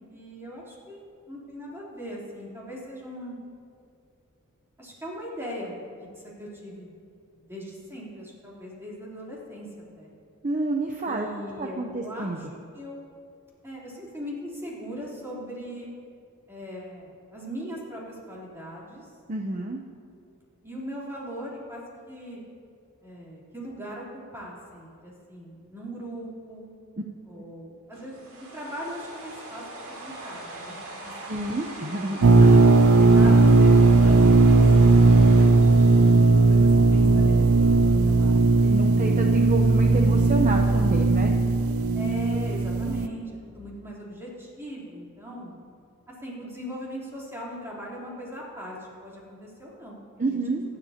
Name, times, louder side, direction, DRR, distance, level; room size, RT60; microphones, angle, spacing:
voice 1, 0.1-1.0 1.3-3.4 4.8-6.9 7.5-9.7 10.0-10.1 11.0-12.5 12.7-13.1 13.6-15.9 16.5-19.1 20.6-22.4 23.0-24.0 24.3-26.7 27.3-29.6 30.0-31.3 32.4-32.9 33.1-35.5 36.0-38.7 41.9-45.6 46.2-48.8 49.0-50.4, equal, 10° right, -6 dB, 3.6 m, -39 dB
voice 2, 10.4-11.3 11.6-12.4 19.3-19.8 27.4-27.5 31.3-32.2 33.2-33.4 38.6-41.3 50.2-50.6, right 2 dB, 35° right, 2 dB, 0.8 m, -29 dB
sound 1, 27.9-37.1, right 2 dB, 90° right, 2.6 m, -41 dB
sound 2, 32.2-43.1, right 3 dB, 70° right, 0.6 m, -17 dB
25.5 x 11.0 x 2.9 m, 2.4 s
head